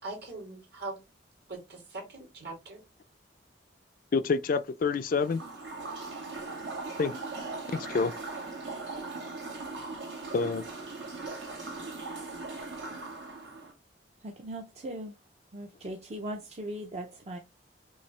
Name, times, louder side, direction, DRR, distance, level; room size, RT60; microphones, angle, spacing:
voice 1, 0.0-1.0 1.5-2.8, right 2 dB, 65° right, 2.5 m, -41 dB
voice 2, 4.1-5.4 7.0-7.1 7.7-8.1 10.3-10.7, left 4 dB, 50° left, 0.4 m, -27 dB
sound 1, 5.0-13.7, right 3 dB, 80° right, 2.2 m, -39 dB
voice 3, 14.2-15.2 15.5-17.4, right 1 dB, 35° right, 0.6 m, -39 dB
5.6 x 2.7 x 3.2 m
head